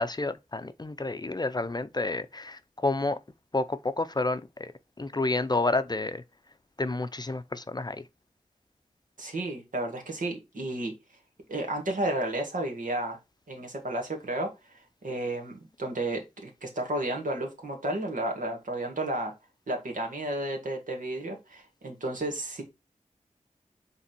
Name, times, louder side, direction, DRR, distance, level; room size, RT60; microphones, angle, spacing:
voice 1, 0.0-3.2 3.5-4.7 5.0-6.2 6.8-8.0, left 2 dB, 30° left, 0.6 m, -30 dB
voice 2, 9.2-10.9 11.5-13.2 13.5-14.5 15.0-19.3 19.7-22.6, right 1 dB, 75° right, 2.1 m, -32 dB
5.8 x 3.8 x 4.4 m
cardioid pair, 50°, 14 cm